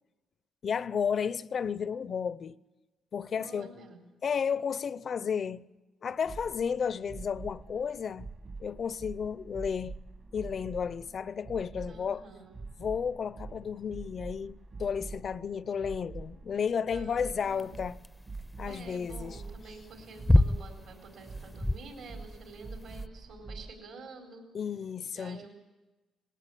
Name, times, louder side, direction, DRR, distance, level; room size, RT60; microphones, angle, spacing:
voice 1, 0.6-2.6 3.1-3.7 4.2-5.6 6.0-8.3 8.6-10.0 10.3-12.3 12.8-18.0 18.6-19.4 24.5-25.4, left 7 dB, 50° left, 0.6 m, -32 dB
voice 2, 3.4-4.0 11.9-12.6 16.9-17.7 18.6-24.5 25.1-25.5, right 3 dB, 70° right, 4.4 m, -49 dB
sound 1, 6.3-23.7, right 3 dB, 40° right, 1.4 m, -45 dB
sound 2, 17.5-23.1, left 1 dB, 10° left, 0.6 m, -28 dB
20.5 x 17.5 x 8.5 m
cardioid pair, 90°, 0 cm